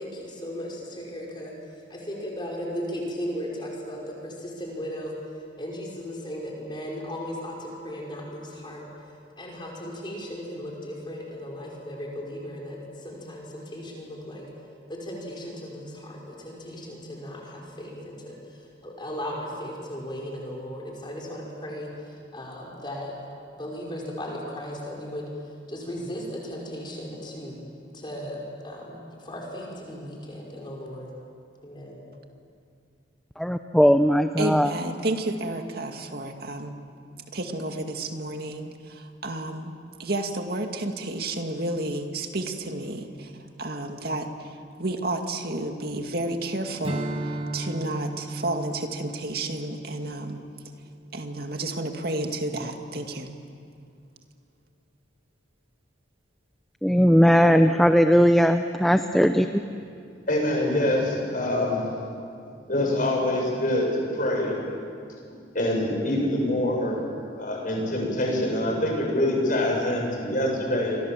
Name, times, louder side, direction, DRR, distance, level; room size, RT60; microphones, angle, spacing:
voice 1, 0.0-1.5 1.9-5.2 5.6-8.9 9.4-14.5 14.9-23.1 23.5-25.3 25.7-27.6 27.9-31.1 31.6-32.1, equal, 25° left, -2 dB, 5.5 m, -36 dB
voice 2, 33.4-34.7 56.8-59.6, equal, ahead, 7 dB, 0.6 m, -19 dB
voice 3, 34.4-36.8 37.3-39.7 40.0-43.3 43.6-50.4 51.1-53.3, right 2 dB, 55° right, 4 dB, 2.2 m, -31 dB
Strum, 46.8-51.5, right 1 dB, 30° right, 1.5 m, -35 dB
voice 4, 60.3-61.9 62.7-64.5 65.5-67.0 67.4-71.0, left 1 dB, 45° left, -1 dB, 7.5 m, -25 dB
30.0 x 24.5 x 7.7 m, 2.4 s
head